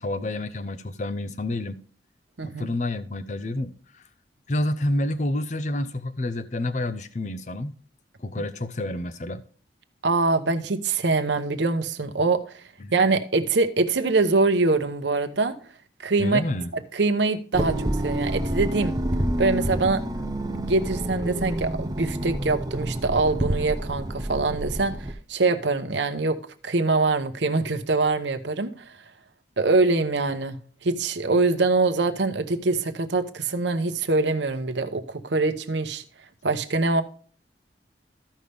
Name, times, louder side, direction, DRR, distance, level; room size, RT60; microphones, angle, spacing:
voice 1, 0.0-1.8 2.4-4.0 4.5-7.8 8.2-9.4 12.8-12.9 16.2-16.7, left 1 dB, 40° left, 0.6 m, -29 dB
voice 2, 10.0-12.4 12.9-15.5 16.0-16.4 16.7-19.0 19.4-20.0 20.7-26.4 26.6-28.7 29.6-36.0 36.4-37.0, right 3 dB, 80° right, 0.9 m, -24 dB
sound 1, 17.5-25.1, right 1 dB, 20° right, 0.6 m, -28 dB
14.0 x 5.5 x 3.4 m
head